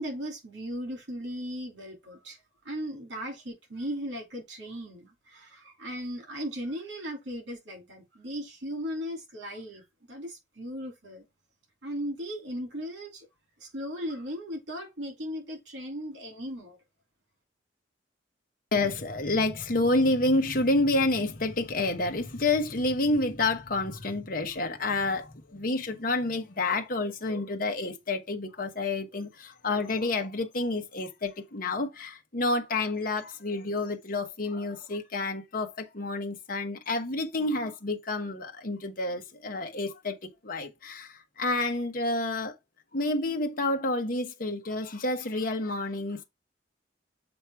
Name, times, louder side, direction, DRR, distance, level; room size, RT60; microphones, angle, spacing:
voice 1, 0.0-2.4 2.6-11.2 11.8-13.3 13.6-16.8, equal, 80° right, 2.8 m, -37 dB
voice 2, 18.7-40.2 40.4-42.5 42.9-46.2, left 2 dB, 50° left, 1.1 m, -29 dB
7.1 x 3.0 x 4.6 m
head